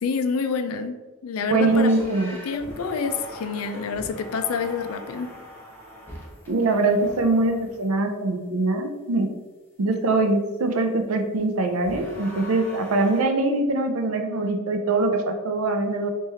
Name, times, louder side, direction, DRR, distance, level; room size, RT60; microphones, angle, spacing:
voice 1, 0.0-1.9 2.5-5.3, left 5 dB, 80° left, 7 dB, 0.4 m, -27 dB
voice 2, 1.5-2.3 6.5-9.3 9.8-16.1, right 2 dB, 80° right, 6 dB, 0.5 m, -23 dB
sound 1, 1.6-7.9 11.8-13.2, equal, 10° left, 0.8 m, -41 dB
3.3 x 3.1 x 3.3 m, 1.2 s
head